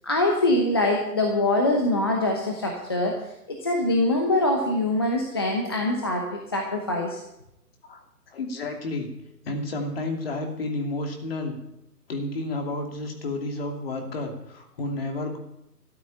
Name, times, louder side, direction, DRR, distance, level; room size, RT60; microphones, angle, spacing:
voice 1, 0.0-3.1 3.5-7.2, left 1 dB, 15° left, 1 dB, 0.9 m, -24 dB
voice 2, 7.8-9.1 9.4-11.6 12.1-15.4, left 2 dB, 35° left, 3 dB, 2.8 m, -31 dB
13.5 x 9.1 x 9.0 m, 0.84 s
hypercardioid pair, 160°, 48 cm